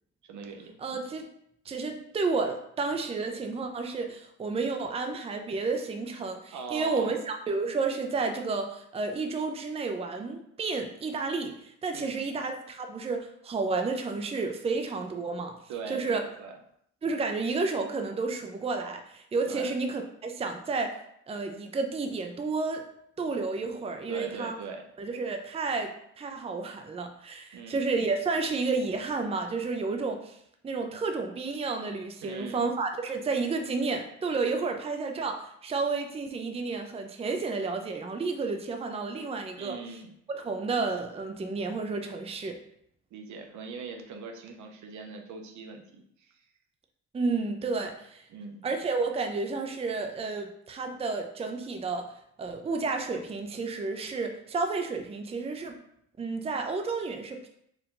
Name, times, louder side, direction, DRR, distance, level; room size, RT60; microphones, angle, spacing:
voice 1, 0.2-0.8 6.5-7.2 11.9-12.2 15.7-16.5 19.5-19.7 24.1-24.8 27.5-27.8 32.2-32.7 39.6-40.1 43.1-46.4 48.3-48.6, right 4 dB, 70° right, 3 dB, 0.7 m, -40 dB
voice 2, 0.8-1.3 1.7-15.6 15.9-16.2 17.0-20.9 21.3-22.8 23.2-24.5 25.0-30.4 30.6-39.8 40.3-42.6 47.1-48.2 48.6-52.1 52.4-55.8 56.2-57.5, right 4 dB, 20° right, 5 dB, 0.5 m, -31 dB
4.6 x 2.5 x 3.8 m, 0.72 s
cardioid pair, 90°, 30 cm